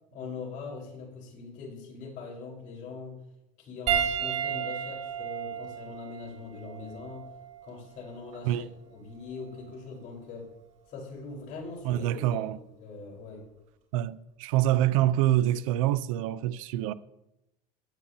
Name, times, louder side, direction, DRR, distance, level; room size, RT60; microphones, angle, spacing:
voice 1, 0.1-3.2 3.6-7.3 7.6-10.5 10.9-13.5, left 4 dB, 50° left, 4.3 m, -42 dB
Piano, 3.9-8.5 9.5-9.7 11.6-11.7, right 8 dB, 40° right, 3.4 m, -33 dB
voice 2, 11.8-12.6 13.9-16.9, right 13 dB, 85° right, 0.6 m, -26 dB
16.0 x 9.9 x 2.8 m
supercardioid pair, 125°, 17 cm